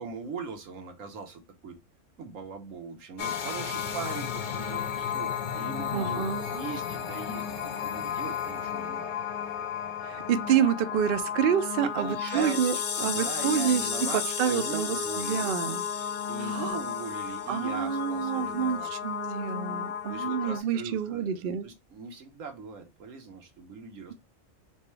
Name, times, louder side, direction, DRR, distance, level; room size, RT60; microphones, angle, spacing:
voice 1, 0.0-1.8 2.2-9.1 11.8-15.5 16.2-18.9 20.1-24.1, right 5 dB, 90° right, 1.3 m, -40 dB
sound 1, 3.2-20.6, left 7 dB, 60° left, 0.5 m, -33 dB
voice 2, 5.9-6.5 10.0-12.7 13.0-15.8 16.4-16.8 17.5-21.7, right 8 dB, 60° right, 0.6 m, -28 dB
4.4 x 2.2 x 3.1 m
omnidirectional pair, 1.3 m